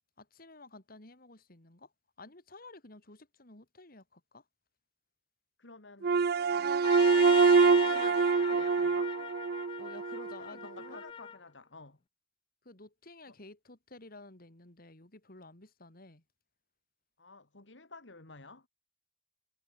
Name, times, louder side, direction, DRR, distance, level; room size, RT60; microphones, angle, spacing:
voice 1, 0.2-1.9 2.2-4.4 9.8-11.0 12.6-16.2, left 2 dB, 55° left, 3.1 m, -52 dB
voice 2, 5.6-6.1 6.5-7.0 7.6-9.2 10.4-12.0 13.3-13.4 17.2-18.7, left 3 dB, 80° left, 2.6 m, -51 dB
sound 1, 6.0-10.3, right 5 dB, 60° right, 0.4 m, -25 dB
Trumpet, 6.8-11.4, left 7 dB, 30° left, 0.3 m, -40 dB
head